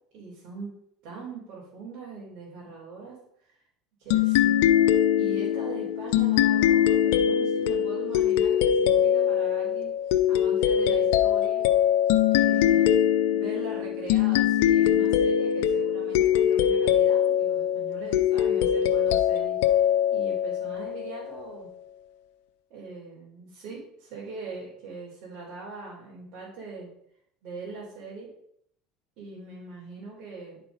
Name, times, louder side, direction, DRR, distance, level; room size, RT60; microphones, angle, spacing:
voice 1, 0.1-0.7 1.0-3.2 3.4-3.6 4.0-4.5 5.2-9.9 10.3-11.6 12.3-19.6 20.1-21.7 22.7-26.9 27.4-28.3 29.2-30.6, right 4 dB, 60° right, -5 dB, 3.5 m, -41 dB
sound 1, 4.1-21.3, left 10 dB, 80° left, 0.6 m, -22 dB
11.0 x 4.5 x 5.1 m, 0.71 s
supercardioid pair, 120°, 0 cm